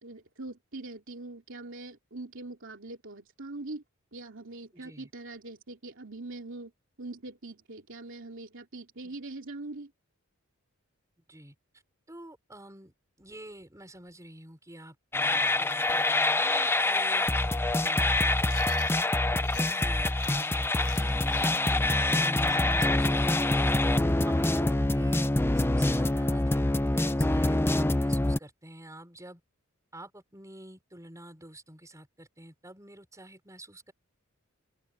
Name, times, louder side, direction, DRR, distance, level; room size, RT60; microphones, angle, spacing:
voice 1, 0.0-3.8 4.1-6.7 7.0-9.9, right 2 dB, 65° right, 3.1 m, -42 dB
voice 2, 4.7-5.1 9.0-9.1 11.3-11.5 12.1-17.3 17.7-18.1 19.3-23.3 24.0-25.2 25.6-29.4 29.9-33.9, right 1 dB, 15° right, 5.6 m, -49 dB
sound 1, 15.1-28.4, left 2 dB, 10° left, 0.6 m, -25 dB
Chewing mastication, 18.5-19.9 20.2-23.8, left 11 dB, 65° left, 6.5 m, -48 dB
open air
head